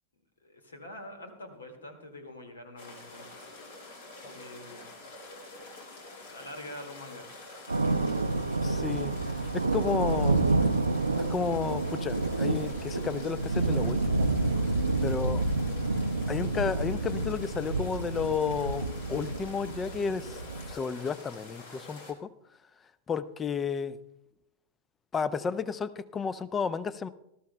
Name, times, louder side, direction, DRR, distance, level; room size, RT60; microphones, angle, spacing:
voice 1, 0.4-3.3 4.2-4.9 6.1-7.3, left 1 dB, 75° left, 6 dB, 1.9 m, -45 dB
sound 1, 2.8-22.1, left 2 dB, 60° left, 2.7 m, -47 dB
Thunder, 7.7-20.7, right 2 dB, 80° right, 0.5 m, -29 dB
voice 2, 8.6-9.1 9.7-10.4 11.3-14.3 15.0-15.4 16.3-20.4 20.7-22.3 23.1-24.0 25.1-27.1, left 6 dB, 20° left, 17 dB, 0.6 m, -32 dB
19.5 x 12.5 x 2.2 m, 0.84 s
figure-of-eight pair, 90°, 0 cm